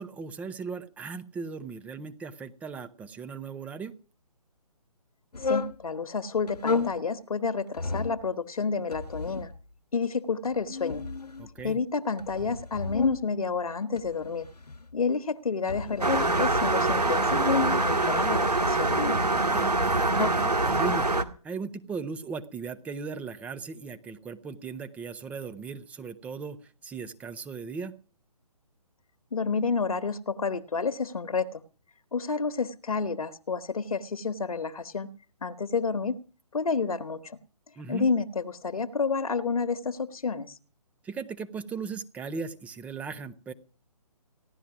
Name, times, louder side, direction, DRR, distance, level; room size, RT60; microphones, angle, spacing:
voice 1, 0.0-3.9 11.4-11.8 19.5-21.1 21.4-27.9 37.8-38.1 41.0-43.5, right 5 dB, 5° right, 11 dB, 0.8 m, -38 dB
sound 1, 5.3-5.8 6.5-7.0 7.7-8.2 8.9-9.6 10.4-11.7 12.2-13.2 14.0-14.9 15.6-16.3 17.2-17.9 18.6-19.2 19.9-20.3, left 4 dB, 85° left, 1.2 m, -31 dB
voice 2, 5.4-9.5 9.9-11.0 11.6-14.5 14.9-17.4 17.7-18.9 29.3-31.6 32.1-35.1 35.4-36.1 36.5-37.4 37.9-40.6, left 5 dB, 65° left, 12 dB, 1.3 m, -30 dB
sound 2, 16.0-21.2, right 2 dB, 90° right, 2.0 m, -24 dB
16.5 x 12.0 x 5.9 m, 0.37 s
figure-of-eight pair, 145°, 20 cm